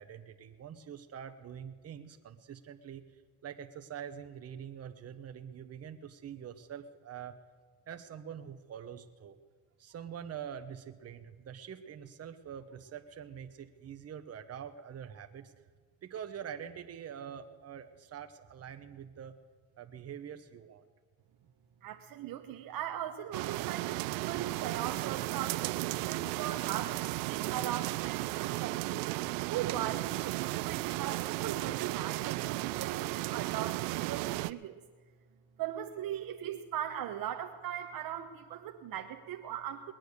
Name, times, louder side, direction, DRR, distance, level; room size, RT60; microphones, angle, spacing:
voice 1, 0.0-3.0 3.4-7.4 7.9-9.4 9.8-15.5 16.0-19.3 19.8-20.9, right 8 dB, 35° right, 8 dB, 1.2 m, -45 dB
voice 2, 21.8-29.0 29.5-34.8 35.6-39.9, right 10 dB, 50° right, 5 dB, 1.0 m, -39 dB
sound 1, 23.3-34.5, right 20 dB, 75° right, 0.6 m, -34 dB
20.5 x 9.1 x 6.7 m, 1.5 s
supercardioid pair, 105°, 43 cm